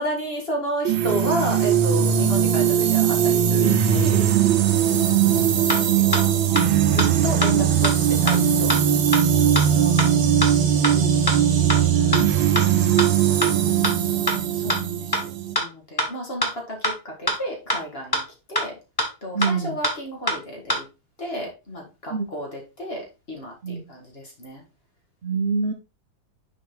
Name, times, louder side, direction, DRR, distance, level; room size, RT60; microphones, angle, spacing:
voice 1, 0.0-4.3 5.7-6.3 6.9-7.9 8.2-8.8 9.4-10.1 14.5-18.2 18.5-18.7 19.2-20.9 21.2-24.6, equal, 30° left, 0 dB, 1.9 m, -32 dB
sound 1, 0.8-15.5, right 9 dB, 80° right, 1.7 m, -20 dB
sound 2, 5.7-5.8 6.1-6.2 6.6-6.7 7.0-7.1 7.4-7.5 7.8-7.9 8.3-8.4 8.7-8.8 9.1-9.2 9.5-9.6 10.0-10.1 10.4-10.5 10.8-10.9 11.3-11.4 11.7-11.8 12.1-12.2 12.6-12.7 13.0-13.1 13.4-13.5 13.8-13.9 14.3-14.4 14.7-14.8 15.1-15.2 15.5-15.6 16.0-16.1 16.4-16.5 16.8-16.9 17.3-17.4 17.7-17.8 18.1-18.2 18.5-18.6 19.0-19.1 19.4-19.5 19.8-19.9 20.3-20.4 20.7-20.8, equal, 15° left, 1.0 m, -22 dB
voice 2, 9.6-10.2 10.9-11.1 11.9-12.3 13.4-14.3 19.3-19.7 22.1-22.3 23.6-23.8 25.2-25.7, right 4 dB, 60° right, 4 dB, 0.6 m, -29 dB
6.4 x 4.8 x 3.7 m, 0.28 s
omnidirectional pair, 2.2 m